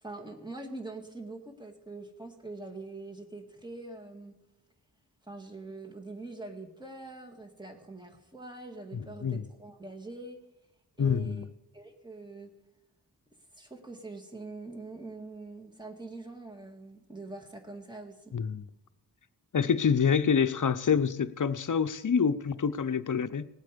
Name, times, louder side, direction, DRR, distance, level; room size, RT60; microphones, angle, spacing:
voice 1, 0.0-4.3 5.2-10.4 11.0-11.5 11.7-12.5 13.6-18.4, right 2 dB, 10° right, 3 dB, 1.8 m, -44 dB
voice 2, 8.9-9.4 11.0-11.5 18.3-18.6 19.5-23.4, left 6 dB, 50° left, 11 dB, 0.6 m, -27 dB
19.0 x 8.2 x 5.1 m, 0.95 s
wide cardioid pair, 70°, 41 cm